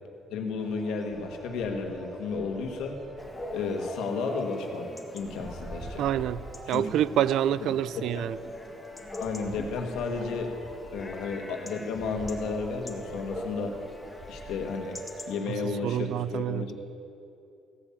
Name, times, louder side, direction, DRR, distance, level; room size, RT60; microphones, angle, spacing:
voice 1, 0.3-3.0 3.5-6.0 6.7-6.9 8.0-8.1 9.2-10.5 10.9-13.8 14.3-15.0 15.3-16.7, left 4 dB, 80° left, 3 dB, 1.8 m, -32 dB
sound 1, 0.6-15.7, right 1 dB, 20° right, 2.2 m, -45 dB
Chatter / Bark / Livestock farm animals working animals, 3.2-15.3, left 2 dB, 15° left, 1.6 m, -43 dB
voice 2, 6.0-6.4 6.7-8.4 15.5-16.7, right 11 dB, 70° right, 18 dB, 0.3 m, -27 dB
16.0 x 8.6 x 7.5 m, 2.7 s
cardioid pair, 115°, 0 cm